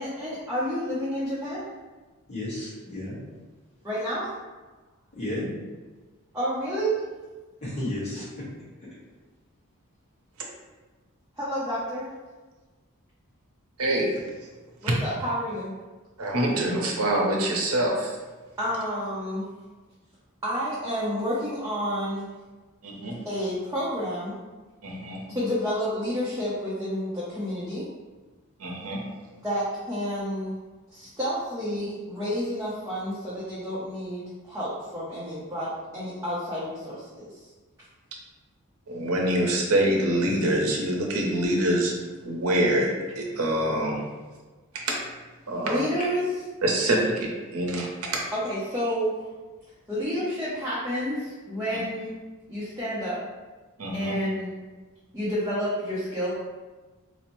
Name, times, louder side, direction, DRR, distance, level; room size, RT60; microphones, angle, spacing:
voice 1, 0.0-1.6 3.8-4.3 6.3-7.0 11.4-12.1 14.8-15.7 18.6-19.4 20.4-22.3 23.2-24.3 25.3-27.8 29.4-30.5 30.9-37.4 45.6-46.2 48.3-49.2 49.9-52.1 52.5-53.2 53.9-54.5 55.1-56.3, equal, 15° right, -10 dB, 0.6 m, -30 dB
voice 2, 2.3-3.2 5.1-5.5 7.6-8.4 46.0-46.1, left 1 dB, 30° left, -8 dB, 1.2 m, -32 dB
voice 3, 13.8-14.2 14.8-14.9 16.2-18.1 22.8-23.2 24.8-25.2 28.6-29.0 38.9-41.9 42.2-44.0 44.7-45.0 45.5-45.8 46.6-48.2 53.8-54.1, right 1 dB, 75° right, -1 dB, 0.7 m, -25 dB
4.2 x 2.0 x 3.0 m, 1.3 s
head